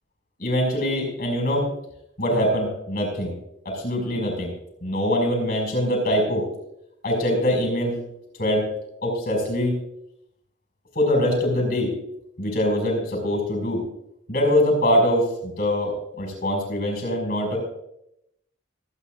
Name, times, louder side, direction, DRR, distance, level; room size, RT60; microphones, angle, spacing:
voice 1, 0.4-1.7 2.2-3.3 3.6-4.5 4.8-6.5 7.0-8.0 8.4-8.7 9.0-9.8 10.9-11.9 12.4-13.8 14.3-17.6, left 1 dB, 50° left, 2 dB, 5.7 m, -23 dB
25.5 x 9.4 x 2.5 m, 0.78 s
head